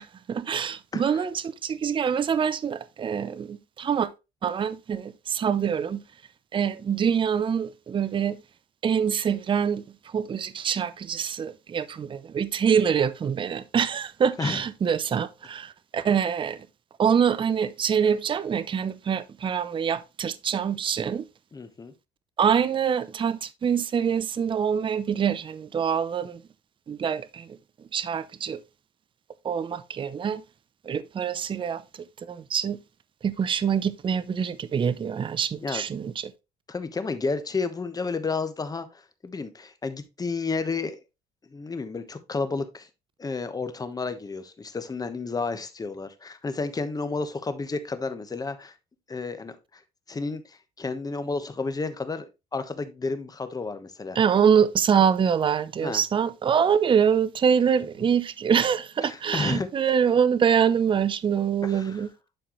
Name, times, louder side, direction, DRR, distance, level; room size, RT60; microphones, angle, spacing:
voice 1, 0.0-4.1 4.4-6.0 6.5-8.4 8.8-9.8 10.1-16.6 17.0-21.3 22.4-26.4 26.9-27.5 27.9-28.6 29.4-30.4 30.9-31.8 32.3-32.8 33.2-36.3 54.2-62.1, right 7 dB, 30° right, 0.5 m, -25 dB
voice 2, 21.5-21.9 35.6-35.8 36.7-41.0 41.5-42.9 43.2-48.7 49.1-49.8 50.1-54.2 55.8-56.0 59.0-59.9 61.6-62.0, left 4 dB, 20° left, 1.1 m, -31 dB
11.5 x 4.5 x 3.0 m
cardioid pair, 110°, 17 cm